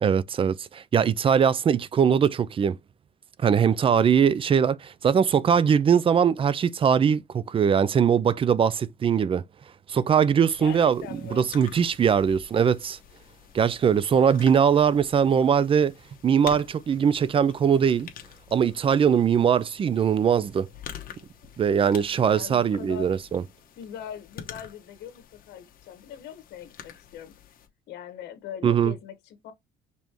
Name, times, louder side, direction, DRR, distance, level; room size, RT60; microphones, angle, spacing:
voice 1, 0.0-2.8 3.4-9.4 9.9-11.0 11.3-13.0 13.5-15.9 16.2-18.1 18.5-20.7 21.6-23.4 28.6-28.9, right 7 dB, 30° right, 0.5 m, -21 dB
sound 1, 10.5-27.7, left 9 dB, 60° left, 1.1 m, -47 dB
voice 2, 10.6-11.5 22.3-23.2 23.8-27.3 27.9-29.5, left 9 dB, 75° left, 1.3 m, -41 dB
5.2 x 3.3 x 3.0 m
cardioid pair, 110°, 17 cm